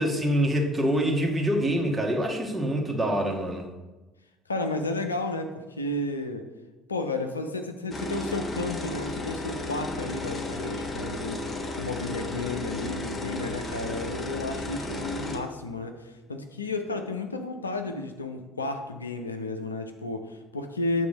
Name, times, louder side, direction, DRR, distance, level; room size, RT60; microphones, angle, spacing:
voice 1, 0.0-3.7, equal, 15° right, 0 dB, 1.6 m, -25 dB
voice 2, 4.5-6.5 6.9-11.4 11.8-21.1, left 2 dB, 85° left, 6 dB, 0.5 m, -32 dB
sound 1, 7.9-15.4, left 2 dB, 25° left, 1.2 m, -34 dB
8.4 x 3.6 x 5.1 m, 1.1 s
figure-of-eight pair, 55°, 0 cm